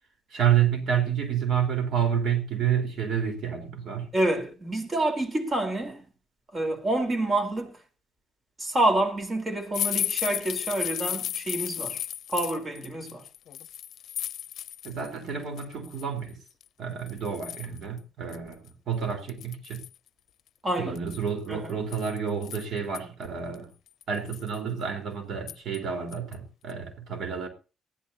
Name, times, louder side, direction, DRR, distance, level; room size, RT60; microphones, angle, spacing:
voice 1, 0.3-4.1 14.8-16.4 16.8-19.8 20.8-23.7 24.1-27.5, right 8 dB, 65° right, 4.3 m, -29 dB
voice 2, 4.1-6.0 6.5-7.7 8.6-12.0 12.3-13.2 20.6-21.0 21.5-21.8, right 1 dB, 30° right, 4.2 m, -28 dB
sound 1, 9.7-15.1 15.4-16.0 16.6-16.7 17.1-17.8 18.3-18.4 18.7-18.8 19.3-20.0 21.0-23.0 23.5-23.6 24.0-24.6 25.5-25.8 26.1-26.3 26.7-26.8, left 10 dB, 70° left, 0.6 m, -34 dB
20.5 x 15.0 x 2.9 m
cardioid pair, 90°, 0 cm